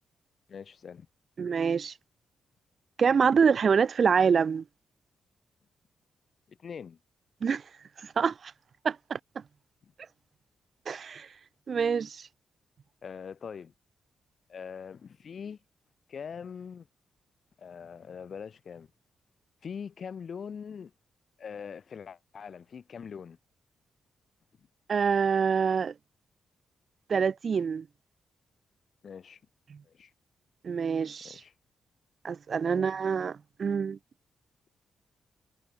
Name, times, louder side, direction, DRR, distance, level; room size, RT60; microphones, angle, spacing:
voice 1, 0.5-1.1 6.5-7.0 9.8-9.9 13.0-13.7 14.5-15.6 16.1-16.9 17.6-18.9 19.6-20.9 21.4-23.4 29.0-29.4 29.8-30.1 31.2-31.5 32.6-33.1, left 6 dB, 45° left, 1.0 m, -42 dB
voice 2, 1.4-1.9 3.0-4.6 7.4-7.6 8.0-8.5 8.8-9.2 10.9-11.3 11.7-12.3 24.9-25.9 27.1-27.8 30.6-31.4 32.2-34.0, right 6 dB, 40° right, 0.4 m, -26 dB
wide cardioid pair, 165°, 0 cm